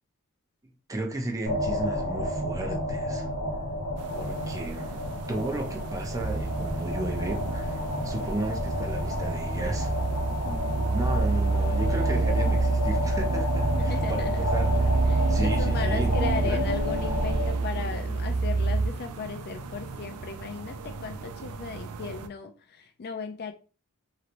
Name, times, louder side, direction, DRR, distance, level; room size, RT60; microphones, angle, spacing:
voice 1, 0.9-3.3 4.1-5.0 5.3-9.9 10.9-14.9 15.2-16.6, right 2 dB, 15° right, 0.5 m, -34 dB
sound 1, 1.5-17.5, left 1 dB, 85° left, 0.8 m, -31 dB
sound 2, 4.0-22.3, right 4 dB, 80° right, 0.4 m, -39 dB
sound 3, 6.2-18.9, right 3 dB, 60° right, 1.1 m, -27 dB
voice 2, 10.3-10.9 13.8-14.4 15.1-23.5, left 5 dB, 45° left, 0.4 m, -37 dB
3.0 x 2.9 x 2.5 m
head